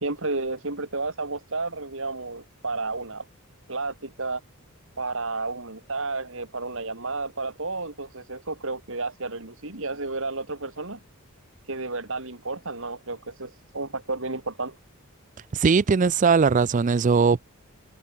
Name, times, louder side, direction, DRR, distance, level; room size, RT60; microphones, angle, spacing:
voice 1, 0.0-3.3 3.7-4.4 5.0-11.0 11.7-14.7, right 3 dB, 60° right, 3.1 m, -32 dB
voice 2, 15.5-17.4, right 5 dB, 35° right, 0.4 m, -20 dB
head